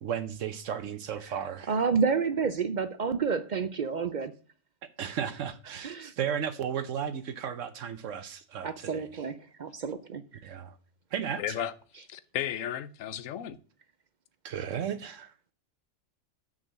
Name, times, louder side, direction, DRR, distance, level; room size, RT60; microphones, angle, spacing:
voice 1, 0.0-1.7 5.0-9.2 10.4-10.8 11.1-11.6 14.4-15.3, right 8 dB, 80° right, 1.1 m, -34 dB
voice 2, 1.7-4.3 5.8-6.1 8.6-10.2, right 5 dB, 50° right, 0.5 m, -29 dB
voice 3, 11.4-11.7 12.1-13.6, left 10 dB, 85° left, 1.1 m, -34 dB
6.5 x 6.2 x 7.4 m
omnidirectional pair, 1.3 m